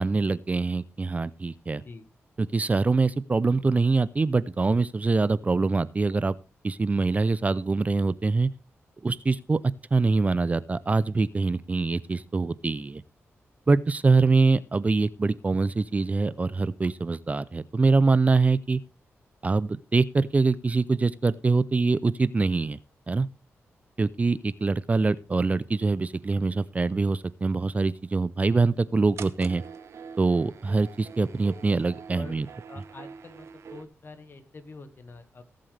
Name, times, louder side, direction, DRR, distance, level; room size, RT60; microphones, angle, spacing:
voice 1, 0.0-1.8 2.4-6.3 6.6-8.5 9.0-9.6 9.9-13.0 13.7-18.8 19.4-22.8 23.1-23.3 24.0-29.6 30.2-32.5, right 3 dB, 30° right, 18 dB, 0.5 m, -24 dB
sound 1, 29.2-33.8, right 6 dB, 70° right, 1.0 m, -44 dB
voice 2, 32.7-35.4, left 3 dB, 45° left, 9 dB, 1.7 m, -45 dB
18.0 x 7.6 x 3.4 m, 0.31 s
cardioid pair, 90°, 5 cm